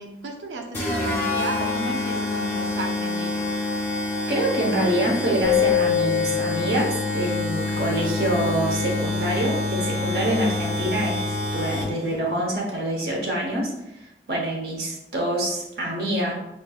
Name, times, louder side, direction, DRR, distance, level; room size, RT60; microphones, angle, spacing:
voice 1, 0.0-3.5, right 3 dB, 85° right, 2 dB, 0.5 m, -34 dB
sound 1, 0.7-12.1, left 2 dB, 10° left, 0.6 m, -27 dB
voice 2, 4.3-13.7 14.3-16.3, right 1 dB, 60° right, -2 dB, 0.9 m, -26 dB
sound 2, 5.4-8.1, left 10 dB, 90° left, 0.4 m, -25 dB
4.3 x 2.4 x 2.4 m, 0.87 s
head